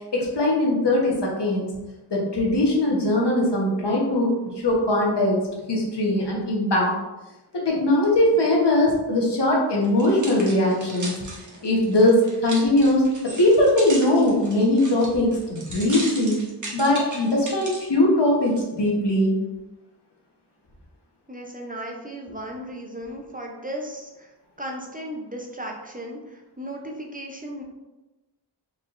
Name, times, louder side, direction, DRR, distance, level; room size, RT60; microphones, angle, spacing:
voice 1, 0.1-1.7 2.1-4.3 4.6-5.4 5.7-6.9 7.5-11.1 11.6-16.4 16.7-19.4, left 1 dB, 70° left, -3 dB, 1.1 m, -20 dB
sound 1, 9.8-17.9 18.5-18.6, right 2 dB, 45° right, 1.0 m, -37 dB
voice 2, 21.3-24.3 24.6-27.6, right 1 dB, 20° right, 0 dB, 0.5 m, -35 dB
4.2 x 3.5 x 2.5 m, 1.1 s
wide cardioid pair, 65°, 42 cm